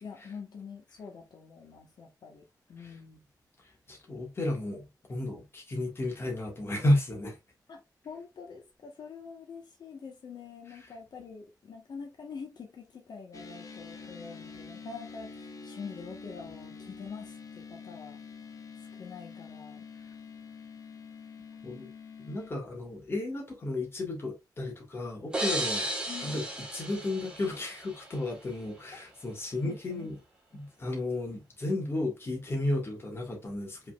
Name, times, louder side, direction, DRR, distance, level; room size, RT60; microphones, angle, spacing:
voice 1, 0.0-3.2 7.7-18.2 18.9-19.8 26.1-26.5 29.5-30.1, left 5 dB, 70° left, 1.2 m, -45 dB
voice 2, 3.9-7.4 21.6-21.9 22.2-25.9 26.2-26.4 26.7-30.2 30.5-33.9, left 1 dB, 35° left, 1.7 m, -33 dB
sound 1, 13.3-22.5, left 5 dB, 50° left, 1.0 m, -46 dB
sound 2, 25.3-28.1, right 1 dB, 15° right, 1.3 m, -34 dB
5.2 x 3.9 x 2.4 m
wide cardioid pair, 175°, 7 cm